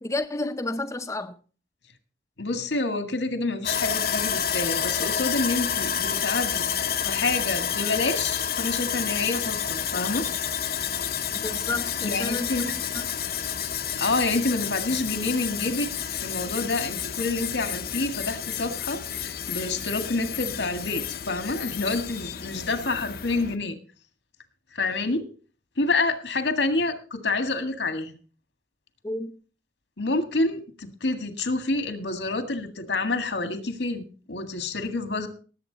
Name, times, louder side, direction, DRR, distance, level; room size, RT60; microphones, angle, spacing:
voice 1, 0.0-1.3 11.3-13.1 29.0-29.3, left 2 dB, 15° left, 0.6 m, -31 dB
voice 2, 2.4-6.7 7.0-10.3 12.0-12.6 14.0-23.8 24.7-25.3 25.8-28.1 30.0-35.3, left 3 dB, 85° left, 1.9 m, -28 dB
Sawing, 3.6-23.6, left 8 dB, 55° left, 0.8 m, -30 dB
18.5 x 8.2 x 4.0 m
head